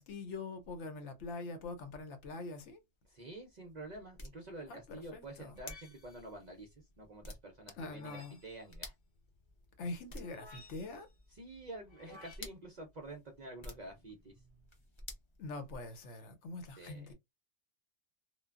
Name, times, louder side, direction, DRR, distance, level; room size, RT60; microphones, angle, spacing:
voice 1, 0.0-2.8 4.7-5.5 7.8-8.4 9.8-11.1 15.4-17.1, left 3 dB, 70° left, 0.9 m, -44 dB
sound 1, 2.9-16.2, left 2 dB, 30° left, 0.6 m, -54 dB
voice 2, 3.1-8.9 11.3-14.3 16.8-17.1, right 2 dB, 55° right, 0.5 m, -49 dB
sound 2, 5.6-6.4 7.8-8.6 10.2-11.1 11.9-12.4, left 3 dB, 50° left, 1.1 m, -56 dB
3.2 x 2.2 x 2.3 m
omnidirectional pair, 1.3 m